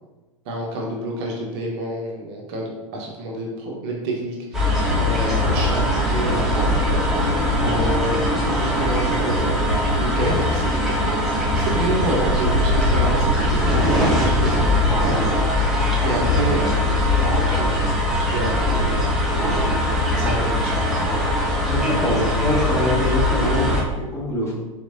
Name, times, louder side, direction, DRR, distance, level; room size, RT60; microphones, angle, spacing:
voice 1, 0.5-5.8 6.1-7.0 7.6-9.6 9.9-15.7 16.0-18.0 18.2-19.8 20.1-20.8, right 1 dB, 50° right, -1 dB, 1.0 m, -29 dB
sound 1, 4.5-23.8, left 1 dB, ahead, 1.0 m, -20 dB
voice 2, 21.7-24.5, equal, 15° left, -5 dB, 1.4 m, -24 dB
4.2 x 3.2 x 2.7 m, 1.1 s
figure-of-eight pair, 90°, 17 cm